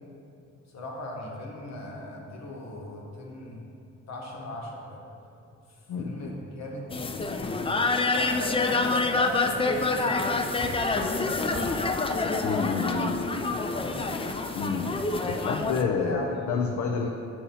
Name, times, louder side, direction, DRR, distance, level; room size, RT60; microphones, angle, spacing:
voice 1, 0.7-3.6 4.1-5.0 5.7-7.7 8.1-11.8 13.6-14.2 15.8-16.7, left 1 dB, 60° left, -1 dB, 1.2 m, -38 dB
voice 2, 5.9-6.3 12.4-13.5 14.6-15.0 15.2-17.1, left 5 dB, 75° left, 2 dB, 0.5 m, -29 dB
sound 1, 6.9-15.8, left 3 dB, 20° left, 0.4 m, -27 dB
7.0 x 2.8 x 5.5 m, 2.7 s
cardioid pair, 70°, 30 cm